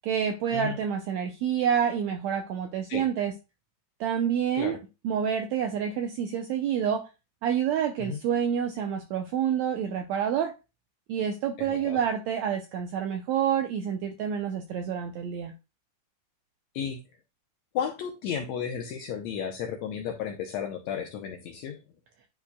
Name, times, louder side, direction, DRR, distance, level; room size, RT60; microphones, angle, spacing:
voice 1, 0.0-3.3 4.0-4.8 5.0-7.1 7.4-10.5 11.1-15.5, right 8 dB, 85° right, 5 dB, 1.6 m, -28 dB
voice 2, 11.6-12.0 16.7-17.0 17.7-21.8, left 7 dB, 75° left, 3 dB, 1.6 m, -33 dB
10.0 x 4.7 x 2.2 m, 0.27 s
omnidirectional pair, 3.9 m